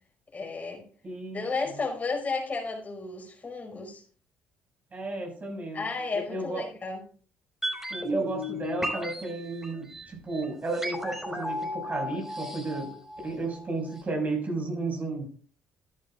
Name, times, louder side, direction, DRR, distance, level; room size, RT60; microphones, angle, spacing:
voice 1, 0.3-0.8 1.3-4.0 5.7-7.0, left 4 dB, 35° left, 1 dB, 5.1 m, -33 dB
voice 2, 1.0-1.8 4.9-5.9 6.1-6.6 7.9-12.9 13.2-15.3, right 2 dB, 40° right, 2 dB, 6.0 m, -33 dB
sound 1, 7.6-13.7 13.9-14.0, equal, 10° right, 5.3 m, -34 dB
14.0 x 11.0 x 2.5 m, 0.42 s
supercardioid pair, 60°, 4 cm